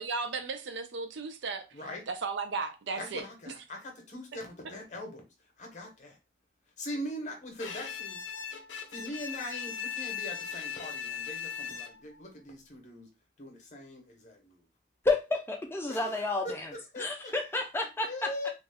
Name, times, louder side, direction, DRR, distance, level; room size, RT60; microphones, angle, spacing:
voice 1, 0.0-1.6 2.1-3.2, right 4 dB, 75° right, 0.5 m, -35 dB
voice 2, 1.7-2.1 3.0-5.3 5.6-6.2 6.8-8.2 8.9-13.1 13.4-14.6 15.9-16.6 16.9-17.3 18.0-18.5, left 1 dB, 40° left, 0.7 m, -41 dB
Bowed string instrument, 7.6-12.2, left 7 dB, 85° left, 0.5 m, -38 dB
voice 3, 15.0-16.7 17.0-18.5, left 3 dB, 10° left, 0.4 m, -31 dB
2.4 x 2.1 x 3.3 m
head